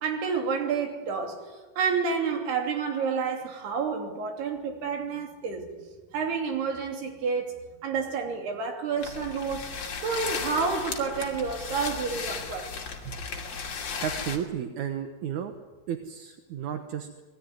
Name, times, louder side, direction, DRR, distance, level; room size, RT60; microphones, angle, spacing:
voice 1, 0.0-1.5 1.8-5.7 6.1-9.7 10.0-12.7, right 5 dB, 90° right, 5.0 m, -29 dB
sound 1, 9.0-14.4, left 5 dB, 45° left, 3.6 m, -35 dB
voice 2, 14.0-15.5 15.9-17.1, right 9 dB, 65° right, 2.2 m, -33 dB
25.5 x 19.0 x 9.5 m
omnidirectional pair, 4.5 m